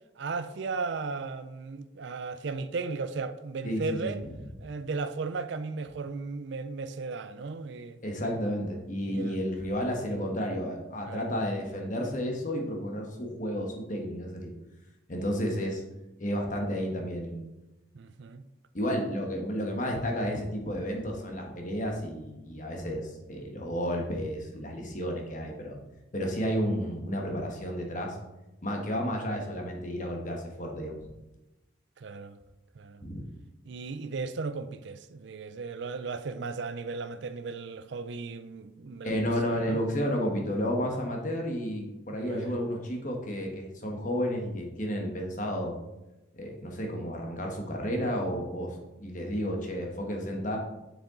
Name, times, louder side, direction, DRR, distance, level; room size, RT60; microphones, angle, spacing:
voice 1, 0.2-4.2 4.6-8.0 9.1-9.4 11.1-11.3 15.2-15.4 17.9-18.4 32.0-32.4 32.7-33.0 33.6-39.8 42.1-42.6, right 4 dB, 65° right, 0.4 m, -36 dB
voice 2, 3.6-4.1 8.0-14.5 15.1-15.8 16.2-17.5 18.7-25.8 26.1-28.2 28.6-31.0 33.0-33.3 39.0-45.8 46.3-50.6, equal, 40° left, 1.3 m, -32 dB
7.0 x 6.6 x 3.8 m
head